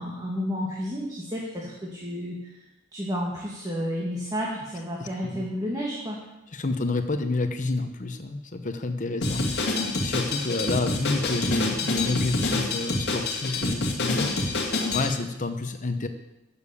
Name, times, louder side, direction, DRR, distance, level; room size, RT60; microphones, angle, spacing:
voice 1, 0.0-2.6 2.9-6.2, equal, 20° right, -4 dB, 2.2 m, -31 dB
voice 2, 5.0-5.4 6.5-14.6 14.9-16.1, left 3 dB, 40° left, 7 dB, 0.9 m, -29 dB
Drum kit, 9.2-15.1, left 2 dB, 55° left, 2.1 m, -27 dB
14.0 x 7.1 x 8.5 m, 0.95 s
head